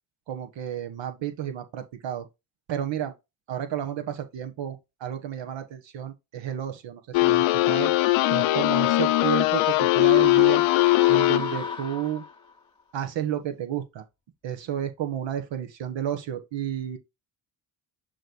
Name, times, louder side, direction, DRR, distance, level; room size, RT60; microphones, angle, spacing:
voice 1, 0.3-2.3 2.7-3.1 3.5-7.9 8.3-10.6 11.1-12.2 12.9-14.0 14.4-17.0, right 10 dB, 70° right, 1.3 m, -31 dB
sound 1, 7.1-11.8, left 18 dB, 85° left, 0.8 m, -20 dB
sound 2, 10.0-12.6, left 4 dB, 10° left, 0.7 m, -36 dB
8.8 x 3.2 x 3.9 m
cardioid pair, 85°, 46 cm